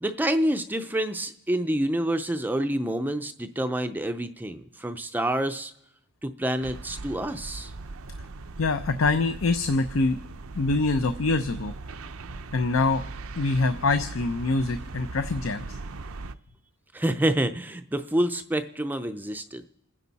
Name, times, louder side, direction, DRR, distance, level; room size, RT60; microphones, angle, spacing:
voice 1, 0.0-5.7 6.2-7.7 16.9-19.7, right 1 dB, 10° right, 8 dB, 0.5 m, -27 dB
sound 1, 6.6-16.3, right 3 dB, 85° right, 0.7 m, -39 dB
voice 2, 8.6-10.2 10.5-11.7 12.5-13.0 13.4-15.8, left 3 dB, 70° left, 10 dB, 0.7 m, -25 dB
28.5 x 10.0 x 4.1 m, 0.86 s
head